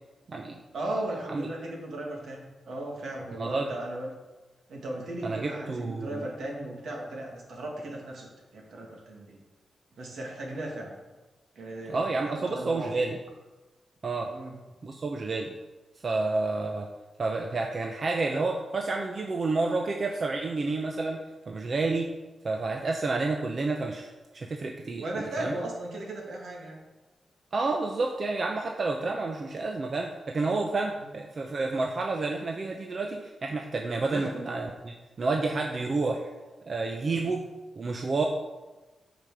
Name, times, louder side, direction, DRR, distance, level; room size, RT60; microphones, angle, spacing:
voice 1, 0.7-4.1 4.7-9.4 9.9-11.0 11.6-12.9 14.3-14.5 25.0-26.8 31.0-31.1 34.1-34.3 37.2-37.3, right 1 dB, 75° right, -1 dB, 2.4 m, -36 dB
voice 2, 3.4-3.7 5.2-6.3 11.9-13.2 14.0-14.3 14.8-15.5 16.0-16.9 17.2-21.2 21.5-22.1 22.4-24.1 24.3-25.0 25.4-25.5 27.5-36.3 36.7-37.4 37.8-38.2, right 3 dB, 45° right, 1 dB, 0.8 m, -29 dB
9.1 x 5.2 x 6.5 m, 1.2 s
wide cardioid pair, 120°, 0 cm